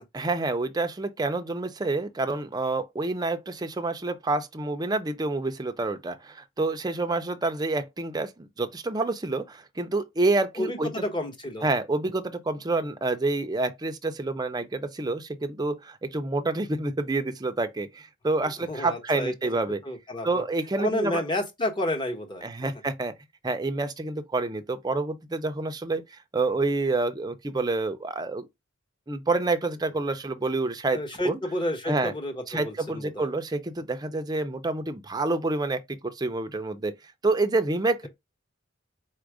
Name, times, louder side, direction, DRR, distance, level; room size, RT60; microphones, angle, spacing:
voice 1, 0.1-10.9 11.6-19.8 20.2-21.2 22.4-23.1 23.4-26.0 26.3-28.5 29.1-31.0 31.2-31.4 31.9-32.1 32.5-36.9 37.2-38.1, right 3 dB, 20° right, 0.5 m, -28 dB
voice 2, 10.6-11.7 18.4-19.6 19.8-20.4 20.8-22.7 30.9-33.3, left 1 dB, 25° left, 1.1 m, -31 dB
4.3 x 2.5 x 4.8 m
head